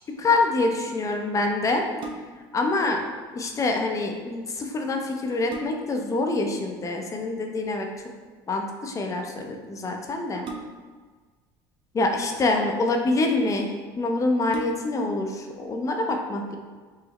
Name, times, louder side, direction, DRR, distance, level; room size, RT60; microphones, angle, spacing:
voice 1, 0.2-1.8 2.5-3.0 3.3-7.9 8.5-10.5 11.9-13.7 14.0-16.6, left 2 dB, 30° left, 3 dB, 0.6 m, -25 dB
sound 1, 2.0-2.6 4.6-4.7 5.1-6.1 7.6-8.0 10.4-11.1 12.0-12.7 13.5-13.6 13.9-14.0 14.4-15.1 15.6-15.7, right 3 dB, 50° right, 0.5 m, -39 dB
4.8 x 2.0 x 2.9 m, 1.4 s
supercardioid pair, 85°, 11 cm